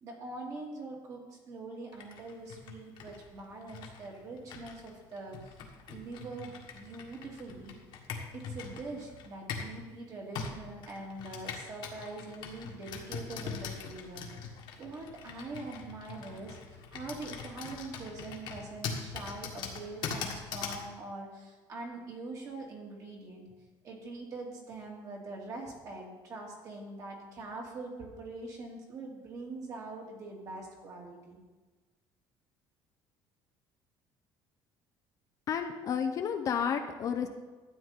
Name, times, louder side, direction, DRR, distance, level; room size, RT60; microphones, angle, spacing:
voice 1, 0.0-7.7 8.3-23.4 23.8-31.4, right 2 dB, 35° right, -1 dB, 2.3 m, -43 dB
Computer keyboard, 1.9-9.8 10.3-20.9, left 5 dB, 55° left, 1.6 m, -42 dB
voice 2, 35.5-37.3, left 7 dB, 35° left, 6 dB, 0.7 m, -31 dB
12.5 x 9.1 x 4.1 m, 1.3 s
cardioid pair, 165°, 9 cm